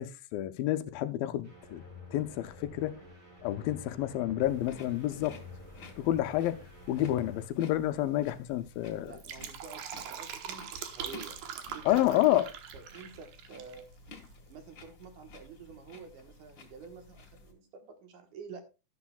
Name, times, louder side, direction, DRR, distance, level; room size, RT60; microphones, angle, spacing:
voice 1, 0.0-1.8 2.1-3.0 3.4-5.4 6.0-6.6 6.9-9.1 11.9-12.5, left 14 dB, 80° left, 2.4 m, -29 dB
sound 1, 1.4-7.5, left 2 dB, 20° right, 5.8 m, -50 dB
sound 2, 4.4-17.5, left 3 dB, 40° left, 1.9 m, -53 dB
voice 2, 8.9-11.4 11.7-12.5 12.7-13.9 14.5-18.6, right 6 dB, 65° right, 2.5 m, -48 dB
Fill (with liquid), 9.0-13.8 14.1-14.2, right 8 dB, 80° right, 3.0 m, -42 dB
12.5 x 11.5 x 2.3 m
omnidirectional pair, 4.2 m